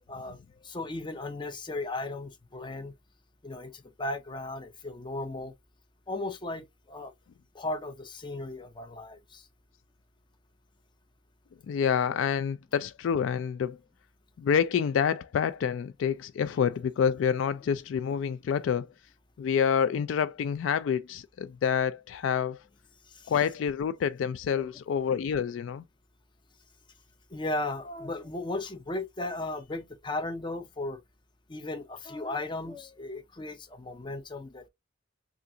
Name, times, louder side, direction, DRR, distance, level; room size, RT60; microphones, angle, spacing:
voice 1, 0.6-2.9 3.4-5.5 6.1-7.1 7.5-9.4 23.1-23.3 24.5-25.0 27.3-31.0 31.5-34.7, left 2 dB, 25° left, 0.6 m, -36 dB
voice 2, 11.7-13.8 14.4-18.9 19.4-22.6 23.3-25.8, left 7 dB, 80° left, 0.3 m, -27 dB
3.6 x 2.4 x 2.7 m
head